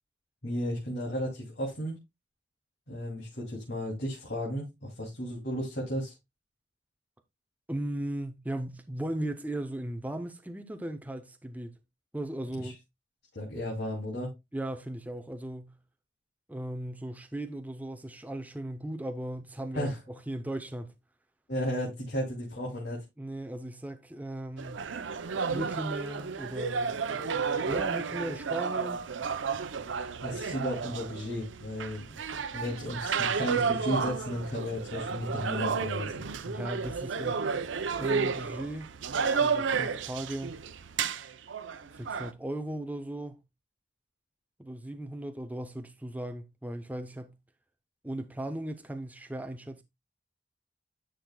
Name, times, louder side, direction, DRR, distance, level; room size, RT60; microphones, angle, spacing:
voice 1, 0.4-2.0 2.9-6.1 12.5-12.7 13.3-14.3 19.7-20.0 21.5-23.0 30.2-32.1 32.3-36.1, equal, 60° left, 2.8 m, -34 dB
voice 2, 7.7-11.7 12.1-12.8 14.5-15.7 16.5-20.9 23.2-24.9 25.5-29.0 36.5-37.5 38.0-38.9 39.3-40.6 41.9-43.4 44.6-47.3 48.0-49.8, right 1 dB, 10° right, 0.6 m, -37 dB
sound 1, 24.6-42.3, right 5 dB, 85° right, 0.6 m, -32 dB
10.5 x 6.3 x 2.2 m
head